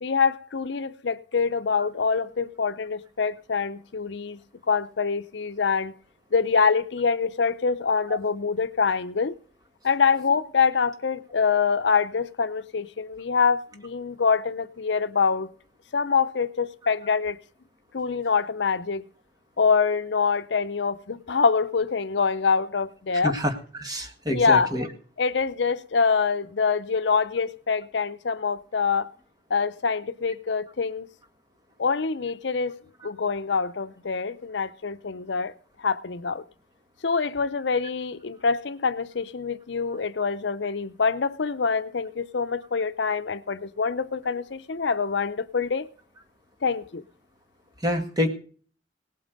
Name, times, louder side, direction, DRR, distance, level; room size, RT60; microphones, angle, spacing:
voice 1, 0.0-4.4 4.7-5.9 6.3-9.4 9.8-15.5 15.9-17.4 17.9-19.0 19.6-23.4 24.3-24.7 25.2-29.1 29.5-31.1 31.8-32.7 33.0-35.5 35.8-36.4 37.0-45.9 46.6-47.0, left 5 dB, 65° left, 0.6 m, -25 dB
voice 2, 23.2-24.9 47.8-48.3, left 1 dB, 20° right, 2.0 m, -27 dB
18.0 x 8.7 x 5.2 m
head